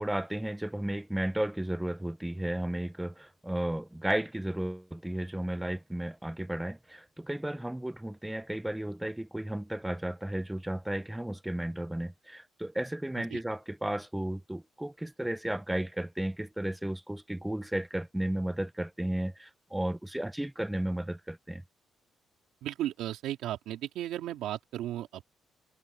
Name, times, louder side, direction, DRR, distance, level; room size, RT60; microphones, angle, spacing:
voice 1, 0.0-21.6, right 1 dB, 5° right, 0.9 m, -34 dB
voice 2, 22.6-25.3, right 13 dB, 85° right, 3.6 m, -35 dB
cardioid pair, 90°, 0 cm